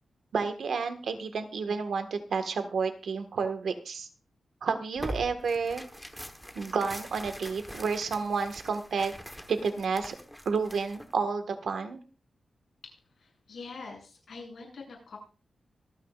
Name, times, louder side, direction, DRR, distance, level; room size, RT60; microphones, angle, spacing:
voice 1, 0.3-4.1 4.6-5.9 6.6-9.1 9.5-10.2 10.5-12.0, right 5 dB, 85° right, 8 dB, 1.6 m, -30 dB
Tearing, 5.0-11.1, equal, ahead, 1.2 m, -43 dB
voice 2, 12.8-15.2, left 4 dB, 65° left, -1 dB, 7.5 m, -45 dB
25.0 x 9.5 x 2.5 m, 0.34 s
wide cardioid pair, 165°, 0 cm